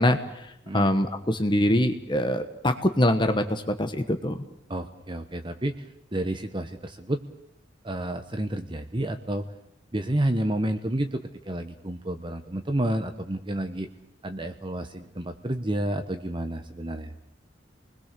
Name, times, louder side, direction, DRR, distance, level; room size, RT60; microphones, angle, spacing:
voice 1, 0.0-0.5 0.7-4.4, left 1 dB, 25° left, 7 dB, 1.3 m, -24 dB
voice 2, 4.7-5.9 6.1-7.2 7.8-9.4 9.9-13.9 14.2-17.1, right 1 dB, 25° right, 7 dB, 1.1 m, -30 dB
28.5 x 21.0 x 6.9 m, 0.80 s
head